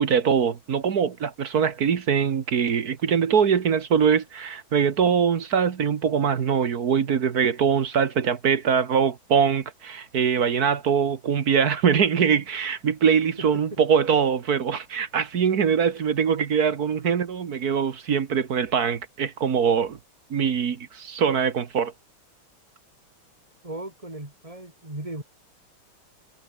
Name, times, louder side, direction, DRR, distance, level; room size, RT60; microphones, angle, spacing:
voice 1, 0.0-20.0 20.3-21.9, right 7 dB, 50° right, 1.6 m, -23 dB
voice 2, 23.6-25.2, right 1 dB, 15° right, 4.7 m, -36 dB
omnidirectional pair, 2.3 m